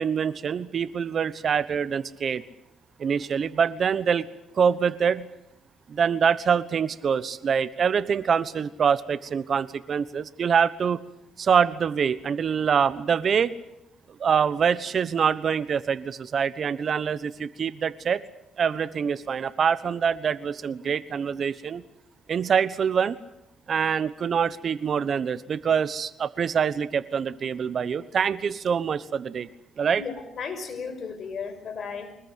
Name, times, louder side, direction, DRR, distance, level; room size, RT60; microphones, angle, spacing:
voice 1, 0.0-2.4 3.0-4.2 4.5-5.3 5.9-11.0 11.4-13.6 14.2-18.2 18.6-21.8 22.3-23.2 23.7-29.5 29.8-30.0, right 7 dB, 50° right, 16 dB, 1.2 m, -25 dB
voice 2, 30.0-32.2, left 5 dB, 55° left, 9 dB, 5.4 m, -35 dB
24.5 x 20.5 x 8.2 m, 0.84 s
cardioid pair, 90°, 0 cm